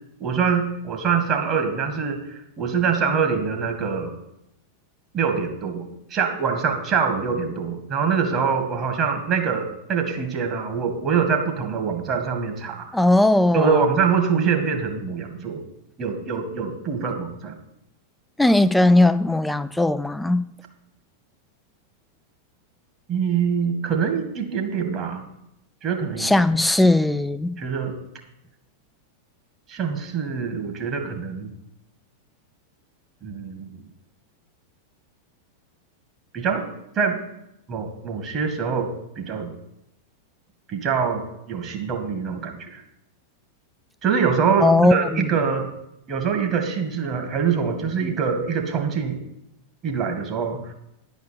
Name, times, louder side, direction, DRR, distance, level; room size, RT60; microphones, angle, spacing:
voice 1, 0.2-4.2 5.1-12.9 13.5-15.6 16.0-17.6 23.1-25.2 25.8-26.3 27.6-28.0 29.7-31.5 33.2-33.8 36.3-36.6 37.0-37.2 37.7-38.9 39.2-39.5 40.7-42.8 44.0-45.7 46.1-49.2 49.8-50.7, right 6 dB, 30° right, 2.0 m, -24 dB
voice 2, 12.9-13.8 18.4-20.5 26.2-27.6 44.6-45.3, left 2 dB, 5° left, 0.4 m, -18 dB
10.5 x 5.2 x 8.4 m
figure-of-eight pair, 90°, 0 cm